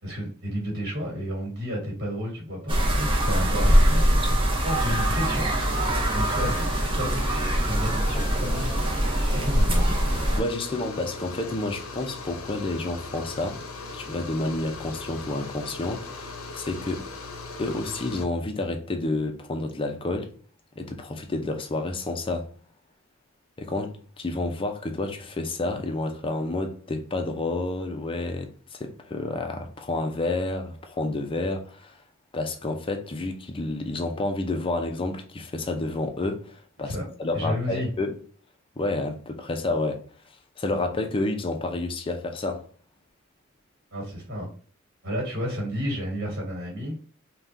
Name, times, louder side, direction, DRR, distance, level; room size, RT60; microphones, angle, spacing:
voice 1, 0.0-4.4 4.6-5.5 6.1-7.2 7.7-8.7 9.3-10.0 36.8-37.0 37.3-37.9 43.9-44.5 45.0-47.0, equal, 50° right, 1.5 m, -31 dB
sound 1, 2.7-10.4, equal, 25° right, 0.7 m, -23 dB
sound 2, 5.6-18.2, left 3 dB, 90° left, 0.7 m, -39 dB
voice 2, 10.4-13.6 13.9-17.1 17.6-20.3 20.8-22.5 23.6-32.0 32.3-38.2 38.8-40.0 40.6-42.7, left 2 dB, 25° left, 0.5 m, -30 dB
3.5 x 2.3 x 2.6 m
head